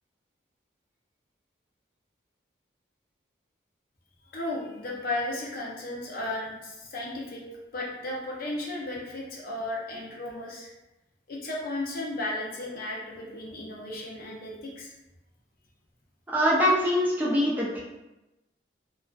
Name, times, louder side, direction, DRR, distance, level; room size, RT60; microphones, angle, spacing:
voice 1, 4.3-7.4 7.7-10.7 11.3-14.9, left 2 dB, 55° left, -3 dB, 0.6 m, -34 dB
voice 2, 16.3-17.8, equal, 10° right, -5 dB, 0.4 m, -23 dB
2.4 x 2.3 x 2.2 m, 0.98 s
head